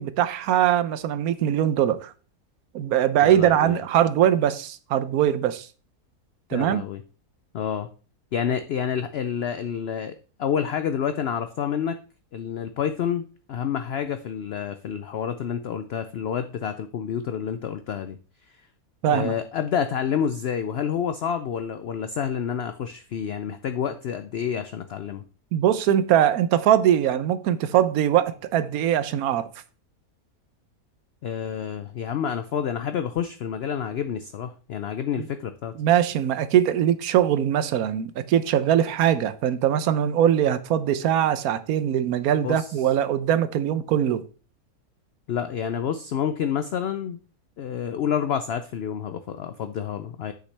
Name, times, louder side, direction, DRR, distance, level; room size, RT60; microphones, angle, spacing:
voice 1, 0.0-2.1 2.7-5.7 6.5-6.8 19.0-19.3 25.5-29.5 35.2-35.3 35.8-44.2, right 10 dB, 70° right, 1.1 m, -21 dB
voice 2, 3.2-3.8 6.5-7.0 7.5-7.9 8.3-12.0 12.3-18.2 18.5-18.6 19.1-25.2 31.2-35.7 42.4-42.8 45.3-47.2 47.6-50.3, left 8 dB, 80° left, 0.5 m, -28 dB
8.1 x 6.4 x 3.3 m
omnidirectional pair, 1.7 m